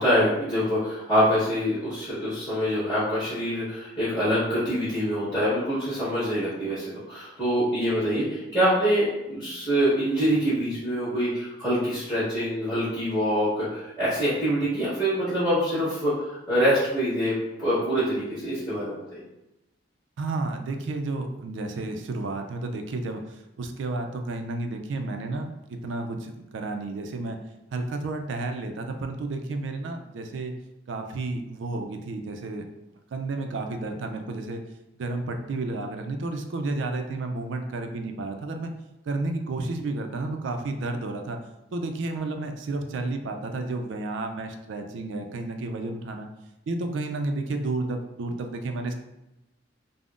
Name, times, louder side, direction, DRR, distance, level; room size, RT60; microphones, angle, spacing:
voice 1, 0.0-19.2, equal, 15° left, -16 dB, 1.4 m, -25 dB
voice 2, 20.2-27.4 27.7-30.5 30.9-32.7 33.1-34.6 34.9-38.7 39.1-41.4 41.7-46.3 46.7-48.9, right 2 dB, 75° right, 5 dB, 0.3 m, -31 dB
3.5 x 2.0 x 2.4 m, 0.93 s
head